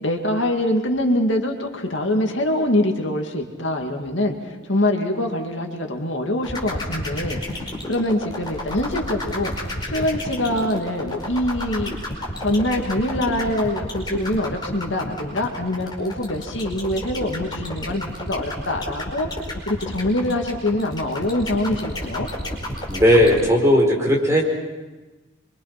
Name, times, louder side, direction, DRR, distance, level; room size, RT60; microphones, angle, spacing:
voice 1, 0.0-9.5 9.9-11.9 12.4-19.3 19.7-22.3, left 1 dB, 65° left, 2 dB, 2.4 m, -24 dB
sound 1, 6.4-23.4, left 1 dB, 20° left, 4.8 m, -31 dB
voice 2, 22.9-24.4, equal, 15° right, -1 dB, 4.4 m, -16 dB
26.5 x 24.0 x 5.9 m, 1.2 s
head